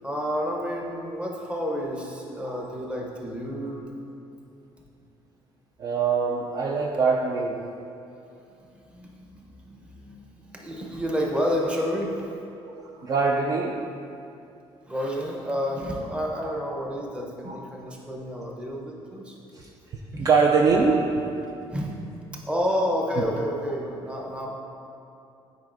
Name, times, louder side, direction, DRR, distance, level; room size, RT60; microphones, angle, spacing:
voice 1, 0.0-3.9 8.9-12.4 14.9-19.4 20.1-20.3 21.7-21.9 22.3-24.5, equal, 10° right, -1 dB, 0.8 m, -30 dB
voice 2, 2.4-2.8 5.8-7.7 12.6-13.9 16.3-16.5 17.5-17.6 19.5-21.4, right 4 dB, 40° right, 0 dB, 0.4 m, -24 dB
9.3 x 4.7 x 2.5 m, 2.7 s
cardioid pair, 145°, 10 cm